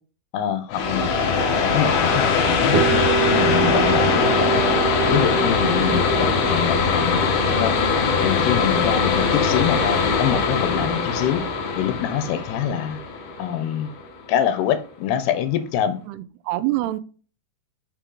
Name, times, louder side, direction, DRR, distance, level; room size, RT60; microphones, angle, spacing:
voice 1, 0.3-1.1 1.5-4.6 5.1-7.8 8.2-11.4 11.8-13.0 13.4-13.9 14.3-16.0, left 9 dB, 85° left, 2.9 m, -25 dB
sound 1, 0.7-14.1, left 5 dB, 60° left, 2.6 m, -21 dB
sound 2, 2.7-10.5, right 7 dB, 55° right, 1.8 m, -27 dB
voice 2, 5.9-6.3 11.4-11.5 16.1-17.0, right 16 dB, 90° right, 2.7 m, -28 dB
8.9 x 4.7 x 3.8 m
omnidirectional pair, 4.6 m